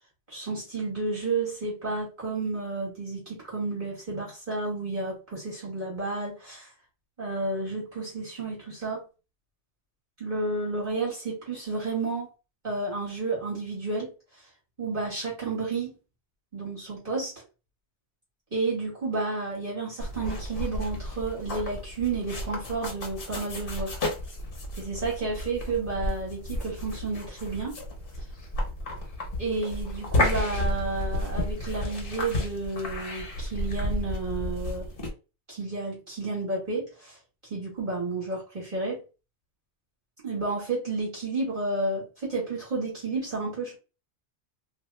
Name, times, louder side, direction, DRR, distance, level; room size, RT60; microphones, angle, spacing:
voice 1, 0.3-6.7 7.2-9.0 10.2-12.3 12.6-14.1 14.8-15.9 16.5-17.3 18.5-24.0 24.8-27.8 29.4-34.9 35.5-37.2 37.5-39.0 40.2-43.8, right 3 dB, 40° right, 1.7 m, -31 dB
sound 1, 20.0-35.1, left 1 dB, 55° left, 1.1 m, -32 dB
2.9 x 2.4 x 3.1 m
omnidirectional pair, 1.2 m